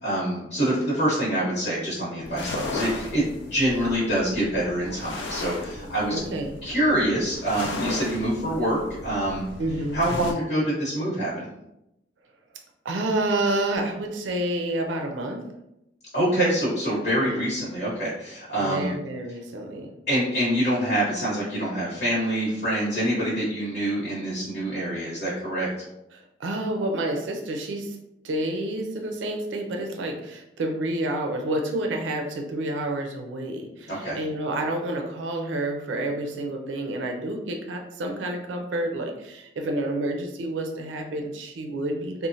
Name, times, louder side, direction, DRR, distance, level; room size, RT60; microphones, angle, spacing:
voice 1, 0.0-6.2 6.6-9.4 9.9-11.5 16.1-18.9 20.1-25.9 33.9-34.2, right 1 dB, 55° left, -8 dB, 1.0 m, -25 dB
sound 1, 2.2-10.3, left 2 dB, 75° left, 0.5 m, -36 dB
voice 2, 6.1-6.5 9.6-10.0 12.8-15.4 17.2-17.3 18.6-19.9 26.1-28.0 28.2-42.3, right 1 dB, 80° right, 3 dB, 0.4 m, -29 dB
3.0 x 2.1 x 2.6 m, 0.86 s
head